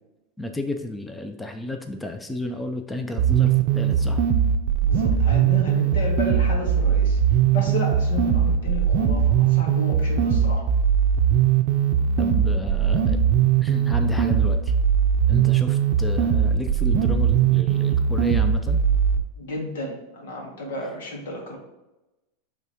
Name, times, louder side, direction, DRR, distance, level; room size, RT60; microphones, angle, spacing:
voice 1, 0.4-4.2 12.2-13.2 13.6-14.7 15.3-18.8, left 1 dB, 5° left, 5 dB, 0.4 m, -32 dB
sound 1, 3.2-19.2, right 8 dB, 50° right, 0.5 m, -20 dB
voice 2, 4.8-10.6 19.4-21.6, left 2 dB, 85° left, 0 dB, 2.1 m, -32 dB
8.3 x 3.6 x 3.5 m, 1.0 s
supercardioid pair, 160°, 0 cm